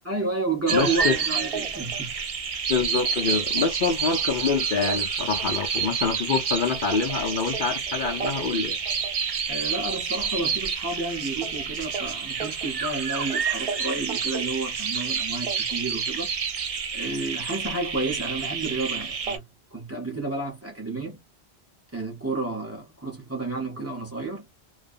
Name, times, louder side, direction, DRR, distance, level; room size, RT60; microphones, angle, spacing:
voice 1, 0.0-2.1 9.5-16.3 16.9-19.4 19.7-21.2 21.9-24.4, right 3 dB, 15° right, 0.8 m, -31 dB
voice 2, 0.7-1.1 2.7-8.8, left 5 dB, 55° left, 0.7 m, -26 dB
sound 1, 0.7-19.4, right 6 dB, 55° right, 0.4 m, -29 dB
2.4 x 2.1 x 2.5 m
omnidirectional pair, 1.1 m